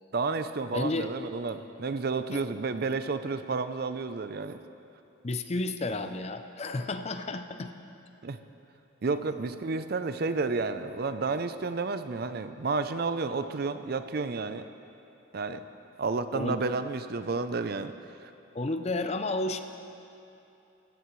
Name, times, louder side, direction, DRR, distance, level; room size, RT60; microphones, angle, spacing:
voice 1, 0.1-4.6 8.2-8.4 9.0-14.6 15.3-15.6 16.0-17.9 18.2-18.3, right 4 dB, 45° right, 10 dB, 0.5 m, -31 dB
voice 2, 0.7-1.1 2.3-2.4 5.2-7.7 16.3-16.6 18.5-19.6, left 2 dB, 30° left, 8 dB, 0.5 m, -31 dB
16.0 x 15.0 x 3.2 m, 2.8 s
head